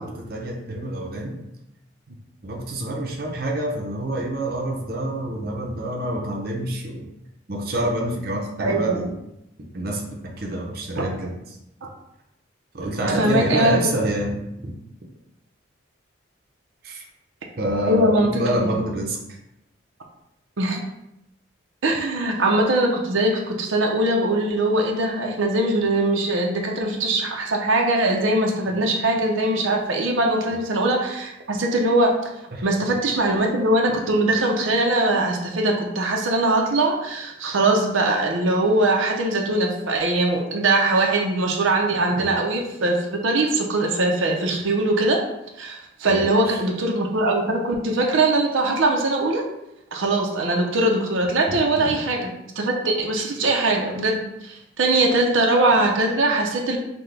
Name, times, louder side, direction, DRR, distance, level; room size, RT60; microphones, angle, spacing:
voice 1, 0.0-1.4 2.4-7.0 7.5-9.1 9.6-11.3 12.7-14.4 14.6-14.7 16.8-17.1 17.6-19.2 32.5-32.7 42.2-42.3 46.0-46.6 51.5-51.9, right 1 dB, 50° right, -1 dB, 0.7 m, -27 dB
voice 2, 8.6-9.0 11.8-11.9 13.0-13.8 17.8-18.7 20.6-20.8 21.8-32.1 32.6-45.2 45.6-49.4 49.9-56.8, right 2 dB, 90° right, 0 dB, 0.7 m, -21 dB
5.8 x 2.2 x 3.3 m, 0.85 s
head